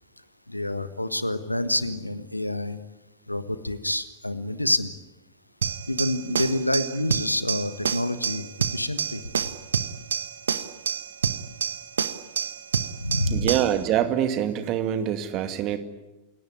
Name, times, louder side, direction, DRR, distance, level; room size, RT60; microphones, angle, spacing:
voice 1, 0.5-2.8 3.3-4.9 5.9-8.5 8.7-9.2 13.0-13.5, left 1 dB, 85° left, 13 dB, 1.4 m, -27 dB
sound 1, 5.6-13.8, right 7 dB, 70° right, 1.2 m, -28 dB
voice 2, 13.3-15.8, right 10 dB, 35° right, 10 dB, 2.4 m, -25 dB
29.0 x 17.5 x 9.9 m, 1.0 s
figure-of-eight pair, 90°, 0 cm